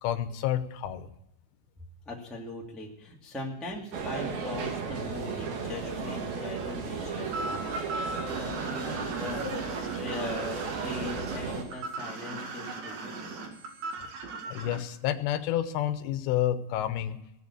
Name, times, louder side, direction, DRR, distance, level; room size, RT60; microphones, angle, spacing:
voice 1, 0.0-1.1 14.0-14.1 14.5-17.2, left 11 dB, 75° left, 9 dB, 3.0 m, -29 dB
voice 2, 2.0-13.4, left 2 dB, ahead, -2 dB, 0.8 m, -40 dB
sound 1, 3.9-11.6, right 5 dB, 60° right, 3.4 m, -34 dB
sound 2, 7.3-14.8, right 3 dB, 75° right, 4.4 m, -37 dB
18.0 x 7.1 x 8.6 m, 0.84 s
omnidirectional pair, 5.2 m